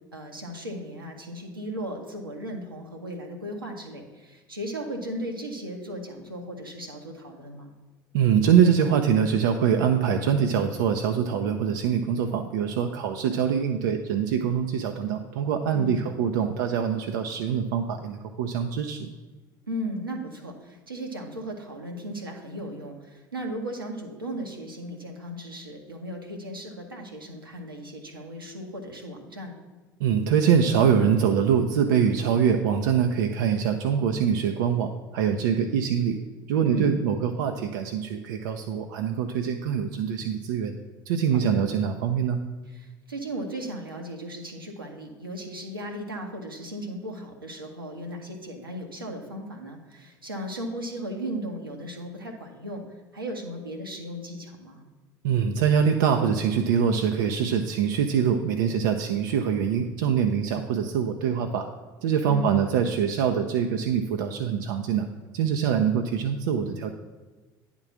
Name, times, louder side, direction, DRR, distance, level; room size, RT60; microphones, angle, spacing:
voice 1, 0.1-7.7 15.7-16.0 19.7-29.6 36.6-37.0 41.3-41.7 42.7-52.8 53.1-54.8 62.3-62.9, equal, 85° right, 1 dB, 1.0 m, -36 dB
voice 2, 8.1-19.1 30.0-36.2 36.5-40.7 41.1-42.4 55.2-61.7 62.0-65.1 65.3-66.9, right 7 dB, 65° right, 5 dB, 0.5 m, -24 dB
9.6 x 3.7 x 6.0 m, 1.3 s
figure-of-eight pair, 65°, 11 cm